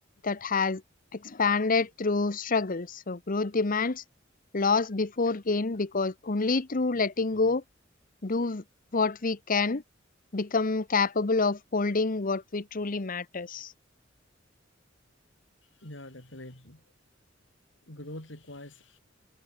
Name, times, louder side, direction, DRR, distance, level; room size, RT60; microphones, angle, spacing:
voice 1, 0.2-0.8 1.1-4.0 4.5-7.6 8.2-8.6 8.9-9.8 10.3-13.7, left 4 dB, 45° left, 1.0 m, -27 dB
voice 2, 15.6-16.8 17.9-19.0, left 1 dB, 70° left, 4.9 m, -44 dB
head